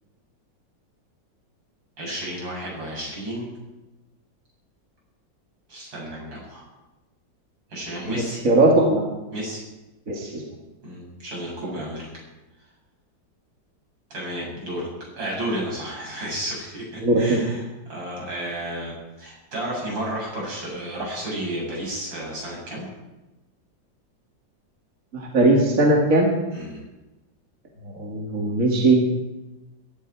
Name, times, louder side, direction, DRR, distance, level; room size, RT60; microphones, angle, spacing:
voice 1, 2.0-3.5 5.7-6.7 7.7-8.4 9.3-9.6 10.8-12.1 14.1-22.9 26.5-26.8, right 1 dB, 85° right, -4 dB, 8.1 m, -32 dB
voice 2, 8.1-9.0 10.1-10.4 17.0-17.5 25.1-26.4 27.8-29.0, right 2 dB, 45° right, -1 dB, 2.6 m, -19 dB
22.5 x 12.5 x 4.8 m, 1.1 s
omnidirectional pair, 2.0 m